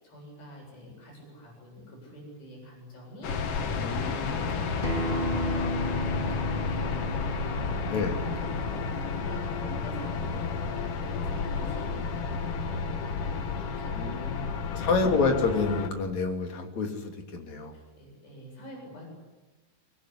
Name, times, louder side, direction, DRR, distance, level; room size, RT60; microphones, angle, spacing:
voice 1, 0.0-14.9 17.7-19.1, equal, 60° left, 0 dB, 10.0 m, -46 dB
sound 1, 3.2-15.9, left 5 dB, 80° left, 1.3 m, -31 dB
voice 2, 3.8-4.4 7.9-8.1 14.0-14.4 14.8-17.8, left 4 dB, 40° left, 3 dB, 3.8 m, -28 dB
Acoustic guitar, 4.8-10.0, right 1 dB, 20° right, 1.3 m, -36 dB
sound 2, 5.5-5.8 7.7-8.0 8.3-8.4 9.6-9.9 11.5-11.8, right 2 dB, 65° right, 5.8 m, -45 dB
24.0 x 21.5 x 9.9 m, 1.1 s
omnidirectional pair, 5.4 m